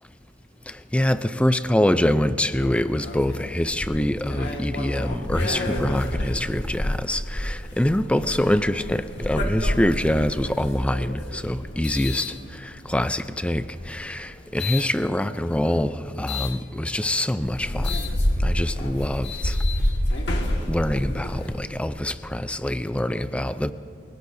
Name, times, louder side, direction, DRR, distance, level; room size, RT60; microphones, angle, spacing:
voice 1, 0.7-18.0 18.4-19.6 20.7-23.7, left 1 dB, 5° left, 12 dB, 0.5 m, -25 dB
sound 1, 3.0-13.0 13.6-14.9 16.3-16.5 17.1-17.2 17.4-21.6, left 1 dB, 65° left, 1.8 m, -28 dB
29.0 x 17.5 x 2.7 m, 2.6 s
head